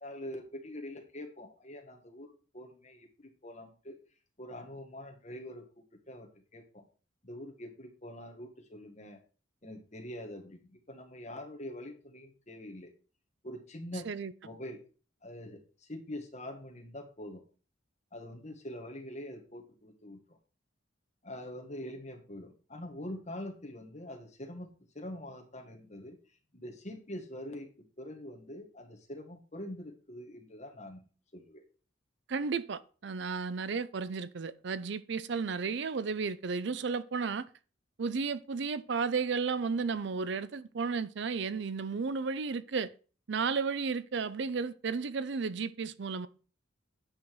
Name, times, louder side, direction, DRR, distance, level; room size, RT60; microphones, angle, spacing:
voice 1, 0.0-4.0 4.4-6.9 7.2-9.2 9.6-12.9 13.4-14.0 14.4-14.8 15.2-17.4 18.1-20.4 21.2-24.7 24.9-26.2 26.5-31.1 31.3-31.6, left 1 dB, 35° left, 1.6 m, -44 dB
voice 2, 32.3-37.5 38.0-42.9 43.3-46.3, right 5 dB, 60° right, 0.5 m, -33 dB
8.8 x 5.7 x 4.6 m
head